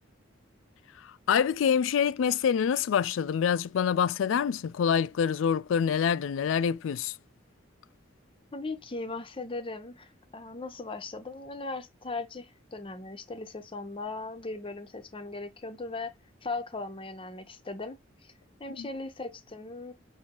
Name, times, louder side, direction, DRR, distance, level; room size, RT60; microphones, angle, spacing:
voice 1, 1.0-7.2 18.7-18.9, left 7 dB, 90° left, 0.3 m, -26 dB
voice 2, 8.5-16.1 16.4-18.3 18.6-19.9, left 3 dB, 30° left, 0.7 m, -38 dB
5.9 x 2.7 x 2.9 m
head